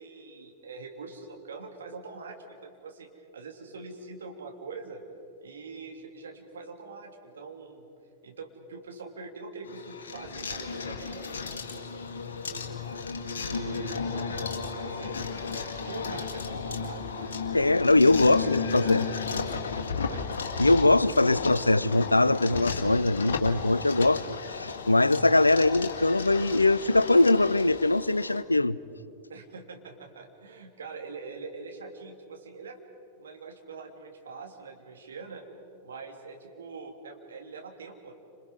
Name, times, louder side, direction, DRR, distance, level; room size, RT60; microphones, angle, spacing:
voice 1, 0.0-5.0 5.4-7.9 8.2-12.8 13.3-17.4 18.3-19.6 20.0-20.2 29.3-32.8 33.2-35.4 35.8-38.1, right 4 dB, 70° right, 3.0 m, -43 dB
sound 1, 9.6-28.4, left 5 dB, 65° left, 1.8 m, -34 dB
voice 2, 17.5-19.0 20.6-24.2 24.5-28.8, left 2 dB, 85° left, 0.5 m, -22 dB
30.0 x 27.0 x 5.4 m
figure-of-eight pair, 90°, 0 cm